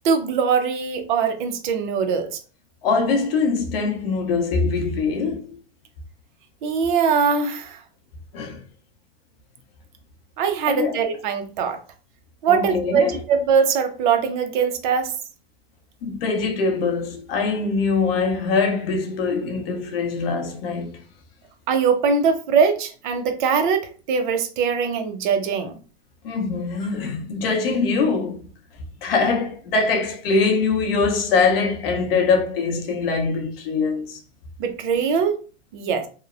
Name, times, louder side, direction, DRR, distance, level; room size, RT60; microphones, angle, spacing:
voice 1, 0.0-2.4 6.6-7.8 10.4-11.8 12.4-15.1 21.7-25.7 34.6-35.4 35.7-36.1, right 6 dB, 50° right, 0.5 m, -21 dB
voice 2, 2.8-5.6 8.3-8.6 10.7-10.9 12.5-13.2 16.0-21.0 26.2-28.5 29.0-34.2, left 4 dB, 60° left, 0.7 m, -23 dB
2.9 x 2.0 x 2.3 m
hypercardioid pair, 140°, 33 cm